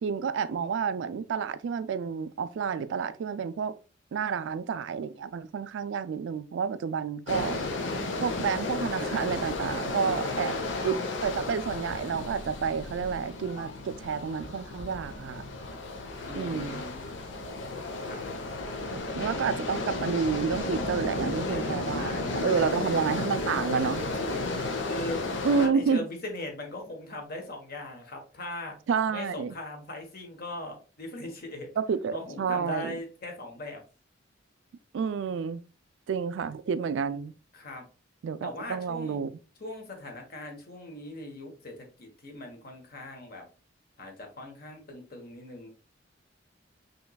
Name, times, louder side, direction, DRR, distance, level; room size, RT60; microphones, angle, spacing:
voice 1, 0.0-3.8 4.1-7.6 8.2-10.6 10.8-15.4 16.3-16.8 18.9-24.0 25.4-26.0 28.9-29.5 31.8-33.0 34.9-35.6 36.1-37.3 38.2-39.3, right 6 dB, 70° right, 0.3 m, -30 dB
sound 1, 7.3-25.7, left 2 dB, 70° left, 0.8 m, -33 dB
voice 2, 16.3-17.2 18.1-18.2 18.8-19.7 21.4-23.1 24.2-24.4 24.9-25.2 25.6-28.7 29.1-31.7 32.1-33.8 37.5-37.9 38.4-39.2 39.6-43.5 44.0-45.7, left 1 dB, 50° left, 1.2 m, -40 dB
5.6 x 3.1 x 2.3 m
head